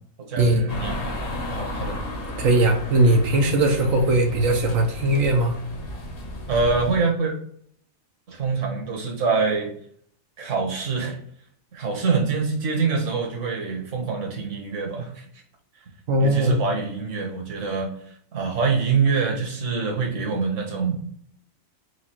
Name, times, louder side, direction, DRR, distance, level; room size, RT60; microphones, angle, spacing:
voice 1, 0.3-1.0 1.5-2.0 6.5-7.3 8.3-9.7 10.4-11.1 11.7-15.3 16.2-17.9 18.3-21.0, right 4 dB, 65° right, 0 dB, 1.5 m, -25 dB
sound 1, 0.7-7.0, left 1 dB, 50° left, 1.0 m, -33 dB
voice 2, 2.4-5.5 16.1-16.6, right 1 dB, 85° right, 1 dB, 1.2 m, -19 dB
4.9 x 2.4 x 4.3 m, 0.63 s
omnidirectional pair, 1.4 m